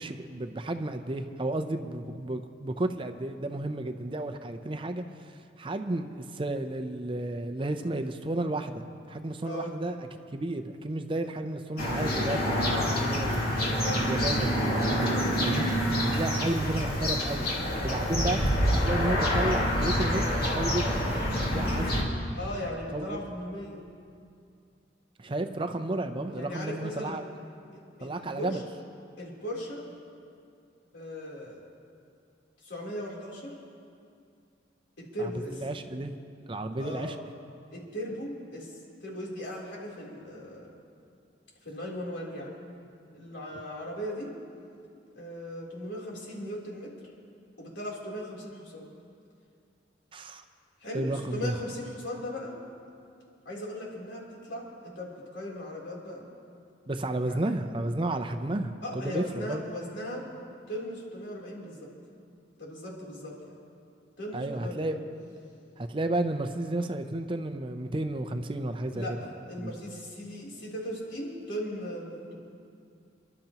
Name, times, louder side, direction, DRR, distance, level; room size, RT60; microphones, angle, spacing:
voice 1, 0.0-5.0 5.6-10.0 10.3-13.5 14.0-15.6 16.0-17.5 17.8-20.2 20.5-21.1 21.4-22.4 22.9-23.2 25.2-27.2 28.0-28.6 35.2-35.3 35.6-36.1 36.5-37.2 50.1-50.4 50.9-51.5 56.9-59.6 64.3-64.9 65.8-69.2 69.6-69.7, right 2 dB, 30° right, 7 dB, 0.5 m, -32 dB
sound 1, 11.8-22.0, equal, 55° left, 2.5 m, -27 dB
voice 2, 22.3-23.8 26.2-27.2 27.7-28.6 29.2-29.8 30.9-31.6 32.6-33.5 35.0-35.6 36.8-37.1 37.7-40.7 41.6-42.6 43.1-44.3 45.2-46.9 47.6-48.9 50.8-52.6 53.4-56.3 57.2-57.6 58.8-60.2 60.7-61.9 62.6-63.6 64.2-65.0 68.9-72.4, equal, 80° left, -4 dB, 3.5 m, -38 dB
29.5 x 12.0 x 3.0 m, 2.4 s
head